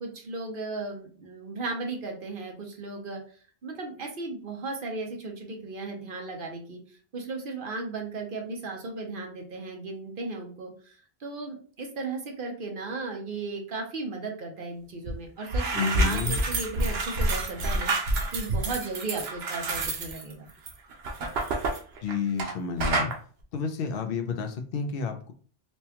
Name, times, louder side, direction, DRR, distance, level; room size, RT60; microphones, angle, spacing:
voice 1, 0.0-3.2 3.6-6.8 7.1-17.9 18.3-20.5, right 3 dB, 60° right, 1 dB, 0.9 m, -36 dB
sound 1, 15.0-15.2 15.4-22.5 22.8-23.1, right 2 dB, 90° right, 1.0 m, -28 dB
voice 2, 15.7-16.4 22.0-23.1 23.5-25.3, left 6 dB, 70° left, 6 dB, 0.8 m, -30 dB
4.3 x 2.2 x 2.8 m, 0.42 s
omnidirectional pair, 1.0 m